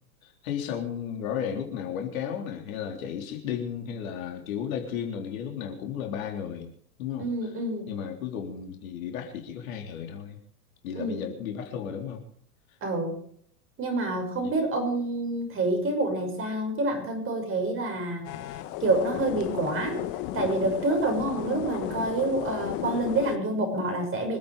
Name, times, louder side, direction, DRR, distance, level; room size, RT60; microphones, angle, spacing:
voice 1, 0.2-6.7 7.0-7.5 7.9-10.4 10.8-12.2 14.4-14.6, left 8 dB, 60° left, 3 dB, 3.8 m, -34 dB
voice 2, 7.2-7.9 10.9-11.3 12.8-13.1 13.8-18.3 18.8-20.0 20.3-24.4, right 2 dB, 25° right, 4 dB, 6.4 m, -27 dB
sound 1, 18.2-23.4, left 15 dB, 40° left, 1.3 m, -34 dB
26.0 x 8.9 x 5.1 m, 0.62 s
hypercardioid pair, 105°, 46 cm